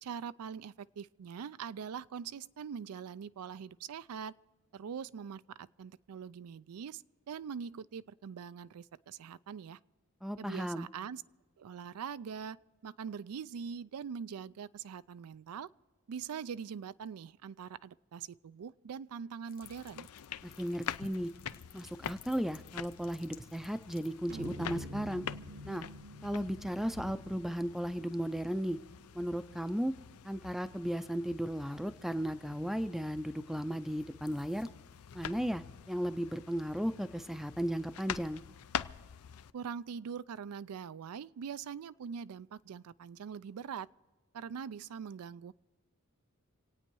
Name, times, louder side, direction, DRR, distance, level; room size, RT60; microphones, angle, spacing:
voice 1, 0.0-4.3 4.7-9.8 10.4-11.2 11.6-15.7 16.1-20.1 39.5-43.9 44.3-45.5, right 7 dB, 90° right, 0.4 m, -43 dB
voice 2, 10.2-10.9 20.4-21.3 21.7-25.2 25.6-25.9 26.2-28.8 29.1-29.9 30.2-34.7 35.1-38.4, equal, ahead, 0.4 m, -35 dB
sound 1, 19.5-24.5, left 10 dB, 45° left, 1.2 m, -58 dB
sound 2, 19.6-39.5, left 8 dB, 85° left, 0.5 m, -46 dB
sound 3, 24.3-28.6, equal, 45° right, 0.7 m, -47 dB
27.0 x 9.1 x 4.6 m
head